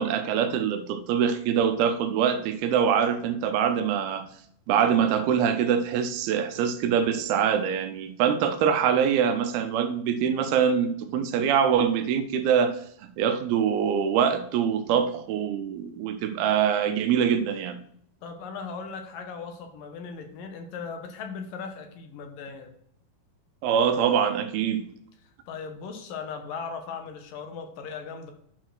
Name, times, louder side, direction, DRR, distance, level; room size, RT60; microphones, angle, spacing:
voice 1, 0.0-4.2 4.7-12.8 13.2-17.8 23.6-24.9, right 8 dB, 80° right, 9 dB, 2.5 m, -24 dB
voice 2, 18.2-22.7 25.5-28.3, left 5 dB, 70° left, 5 dB, 2.4 m, -38 dB
10.5 x 4.5 x 6.1 m, 0.68 s
omnidirectional pair, 4.6 m